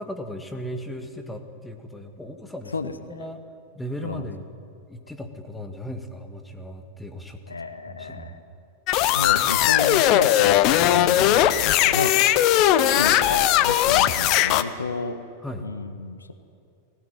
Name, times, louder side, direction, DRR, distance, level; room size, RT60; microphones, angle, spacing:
voice 1, 0.0-3.4 3.7-4.5 4.9-7.6 7.9-8.4 15.4-15.7, equal, 5° left, 6 dB, 1.8 m, -37 dB
voice 2, 2.7-3.3 4.0-4.2 7.5-8.4 9.0-15.2 15.6-16.3, left 3 dB, 75° left, 10 dB, 1.1 m, -32 dB
sound 1, 8.9-14.6, left 12 dB, 40° left, 0.8 m, -19 dB
19.0 x 17.5 x 9.1 m, 2.6 s
figure-of-eight pair, 90°, 0 cm